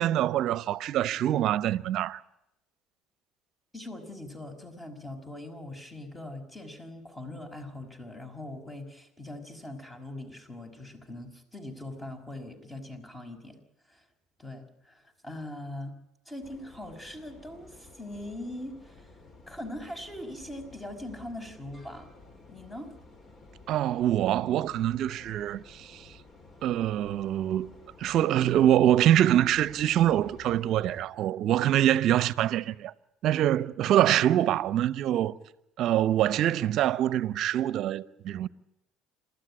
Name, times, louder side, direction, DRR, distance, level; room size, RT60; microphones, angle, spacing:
voice 1, 0.0-2.2 23.7-26.1 26.6-27.7 28.0-32.9 33.2-35.4 35.8-38.5, right 12 dB, 60° right, 0.8 m, -25 dB
voice 2, 3.7-13.6 13.9-14.0 14.4-15.9 16.3-19.2 19.5-22.1 22.5-22.9, left 1 dB, 20° left, 5.6 m, -41 dB
sound 1, 16.4-31.0, left 2 dB, 35° left, 3.7 m, -53 dB
27.5 x 13.5 x 9.9 m
hypercardioid pair, 65°, 0 cm